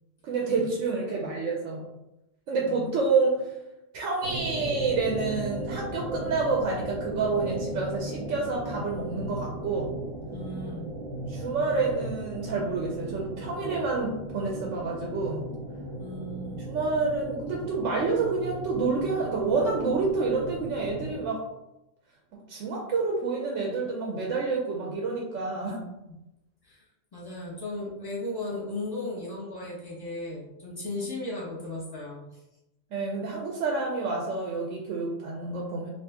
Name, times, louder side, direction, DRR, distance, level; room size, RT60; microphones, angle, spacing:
voice 1, 0.2-1.8 2.5-3.5 3.9-9.9 11.3-15.5 16.7-21.4 22.5-25.8 32.9-35.9, right 4 dB, 70° right, -1 dB, 0.9 m, -28 dB
voice 2, 1.1-1.4 2.6-2.9 10.3-10.9 16.0-16.6 25.5-25.8 26.1-26.2 26.6-26.9 27.1-32.4, left 2 dB, 20° left, -5 dB, 0.7 m, -36 dB
sound 1, 4.2-21.3, right 1 dB, 90° right, 1.2 m, -37 dB
2.7 x 2.4 x 3.4 m, 0.92 s
omnidirectional pair, 1.5 m